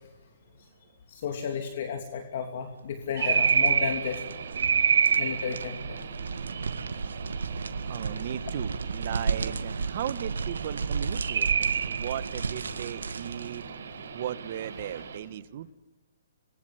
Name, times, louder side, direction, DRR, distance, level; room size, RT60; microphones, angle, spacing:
voice 1, 1.1-4.2 5.2-6.0 14.8-15.0, left 6 dB, 55° left, 4 dB, 3.1 m, -33 dB
sound 1, 3.0-13.7, right 5 dB, 85° right, 1.8 m, -34 dB
sound 2, 3.2-15.2, right 7 dB, 70° right, 7.1 m, -30 dB
voice 2, 7.9-13.6 14.1-15.7, right 11 dB, 50° right, 14 dB, 1.5 m, -37 dB
26.5 x 22.5 x 8.1 m, 1.0 s
hypercardioid pair, 140°, 0 cm